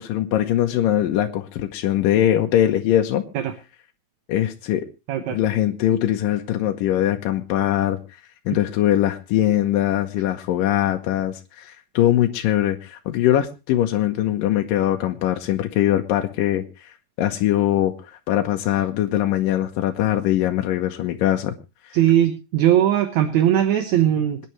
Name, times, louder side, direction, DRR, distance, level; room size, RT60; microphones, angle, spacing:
voice 1, 0.0-3.2 4.3-4.9 5.3-8.0 8.5-16.9 17.2-17.9 18.3-21.5, left 12 dB, 85° left, 4 dB, 2.7 m, -21 dB
voice 2, 21.9-24.4, right 11 dB, 65° right, 9 dB, 2.3 m, -19 dB
26.5 x 9.9 x 3.1 m, 0.30 s
omnidirectional pair, 3.8 m